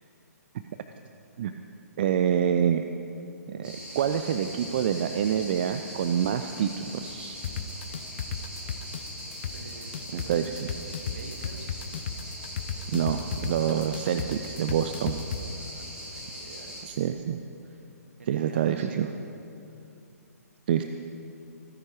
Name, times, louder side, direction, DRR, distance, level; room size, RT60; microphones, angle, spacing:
voice 1, 2.0-2.8 3.5-7.4 10.1-10.7 12.9-15.2 16.8-17.4 18.3-19.1 20.7-20.8, right 9 dB, 35° right, 8 dB, 0.5 m, -27 dB
sound 1, 3.6-16.8, equal, 10° right, 4.2 m, -41 dB
sound 2, 7.4-15.4, left 8 dB, 40° left, 0.7 m, -33 dB
voice 2, 9.5-10.6 10.9-11.8 15.3-16.9 17.6-17.9 18.2-19.2, right 3 dB, 60° right, 4 dB, 2.1 m, -48 dB
26.0 x 9.9 x 4.8 m, 2.7 s
figure-of-eight pair, 130°, 9 cm